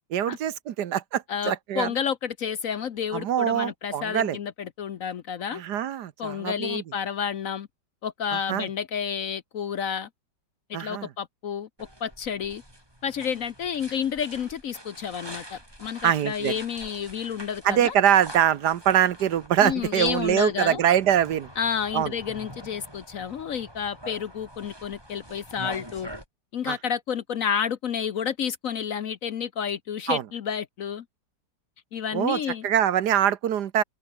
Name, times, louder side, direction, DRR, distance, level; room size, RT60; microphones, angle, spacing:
voice 1, 0.1-1.9 3.1-4.4 5.5-6.8 8.3-8.7 10.7-11.1 16.0-16.6 17.6-21.5 21.9-22.1 26.7-26.8 30.1-30.2 32.1-33.8, right 10 dB, 70° right, 1.5 m, -24 dB
voice 2, 1.3-5.6 6.2-7.7 8.0-10.1 10.7-12.6 13.0-17.9 19.6-20.8 21.6-26.1 26.5-31.0 31.9-32.7, left 7 dB, 55° left, 1.1 m, -30 dB
sound 1, 11.8-26.3, equal, 10° right, 7.8 m, -45 dB
omnidirectional pair, 1.9 m